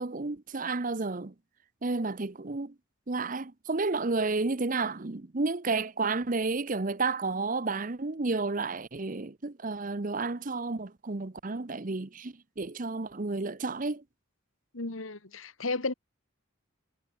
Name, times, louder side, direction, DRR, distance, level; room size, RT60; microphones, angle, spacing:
voice 1, 0.0-1.3 1.8-2.7 3.1-14.0, right 3 dB, 40° right, 0.9 m, -31 dB
voice 2, 14.7-15.9, left 3 dB, 85° left, 2.0 m, -33 dB
head